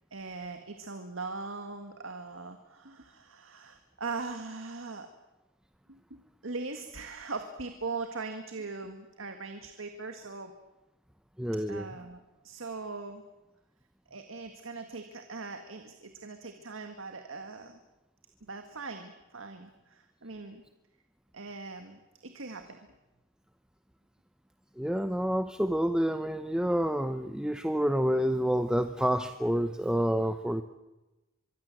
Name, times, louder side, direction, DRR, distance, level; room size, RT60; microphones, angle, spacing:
voice 1, 0.1-5.1 5.9-10.5 11.7-13.2 14.1-17.8 18.4-20.6 21.3-22.8, right 3 dB, 70° right, 6 dB, 1.8 m, -40 dB
voice 2, 11.4-11.9 24.8-30.6, equal, 5° right, 9 dB, 0.8 m, -28 dB
24.0 x 24.0 x 7.7 m, 1.0 s
head